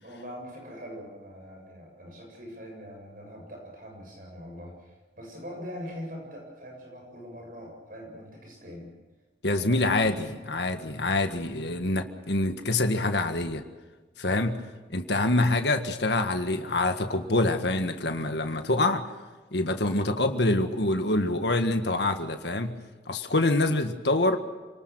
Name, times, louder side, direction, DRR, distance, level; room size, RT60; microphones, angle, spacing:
voice 1, 0.0-8.9 9.5-10.4, equal, 50° right, 1 dB, 7.6 m, -43 dB
voice 2, 9.4-13.6 14.2-14.6 14.9-19.1 19.5-22.8 23.1-24.4, left 2 dB, 75° left, 6 dB, 1.7 m, -26 dB
28.0 x 19.5 x 6.3 m, 1.3 s
head